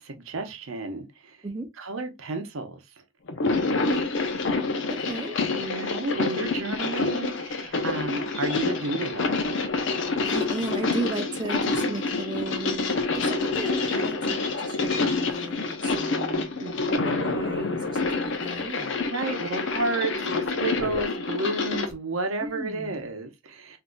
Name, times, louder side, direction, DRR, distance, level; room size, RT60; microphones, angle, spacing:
voice 1, 0.0-1.4 1.8-2.8 5.5-9.3 11.8-11.9 16.6-17.5 19.1-23.8, right 2 dB, 80° right, 0.8 m, -32 dB
sound 1, 3.3-21.9, left 3 dB, 60° left, 0.6 m, -27 dB
voice 2, 4.9-5.4 10.2-19.0 22.4-23.1, right 2 dB, 20° right, 0.5 m, -36 dB
3.9 x 2.6 x 2.2 m
head